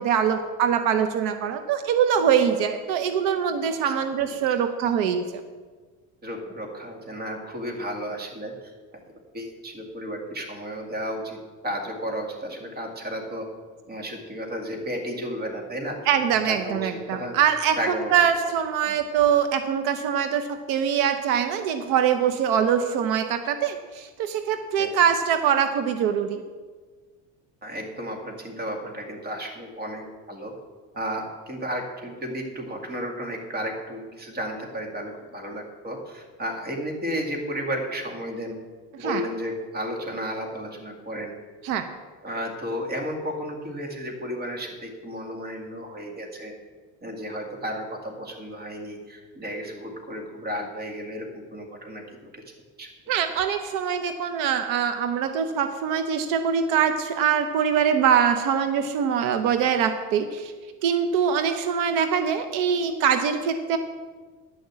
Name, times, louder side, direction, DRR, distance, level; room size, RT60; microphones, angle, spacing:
voice 1, 0.0-5.3 16.1-26.4 39.0-39.2 41.6-41.8 53.1-60.5 60.8-63.8, right 8 dB, 85° right, 8 dB, 0.9 m, -23 dB
voice 2, 6.2-8.7 9.3-13.5 13.9-16.0 16.4-17.4 17.8-18.3 18.9-19.0 24.8-24.9 27.6-30.5 30.9-38.6 39.0-41.3 42.2-46.5 47.0-52.4 52.8-52.9, equal, 30° right, 2 dB, 2.3 m, -33 dB
11.0 x 6.5 x 8.2 m, 1.4 s
cardioid pair, 140°, 33 cm